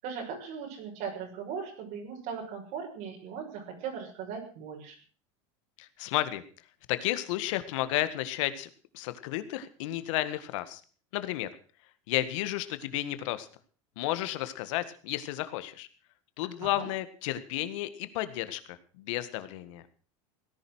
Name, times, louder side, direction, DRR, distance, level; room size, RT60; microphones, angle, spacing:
voice 1, 0.0-4.9 16.6-16.9, right 6 dB, 60° right, 0 dB, 6.4 m, -38 dB
voice 2, 5.8-6.4 6.9-10.8 11.1-11.5 12.1-13.5 14.0-15.9 16.4-19.8, left 15 dB, 75° left, 12 dB, 1.8 m, -32 dB
17.5 x 11.0 x 6.3 m, 0.41 s
supercardioid pair, 135°, 16 cm